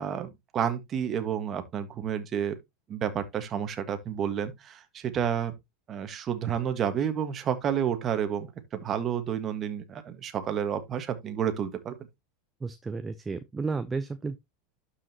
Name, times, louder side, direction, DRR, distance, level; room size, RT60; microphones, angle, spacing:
voice 1, 0.0-2.6 2.9-5.5 5.9-11.9, right 8 dB, 35° right, 1.6 m, -30 dB
voice 2, 12.6-14.4, right 4 dB, 20° right, 0.7 m, -32 dB
12.0 x 5.0 x 2.9 m
hypercardioid pair, 90°, 0 cm